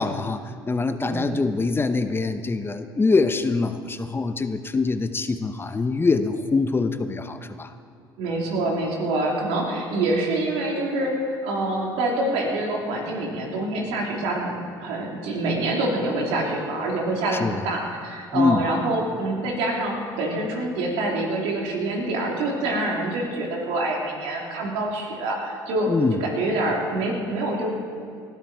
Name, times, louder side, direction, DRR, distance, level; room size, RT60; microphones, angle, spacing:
voice 1, 0.0-7.7 17.3-17.6 18.3-18.7 25.9-26.2, left 3 dB, 20° left, 9 dB, 0.8 m, -24 dB
voice 2, 8.2-27.8, right 2 dB, 75° right, -1 dB, 3.4 m, -26 dB
19.5 x 12.5 x 4.5 m, 2.4 s
hypercardioid pair, 75°, 10 cm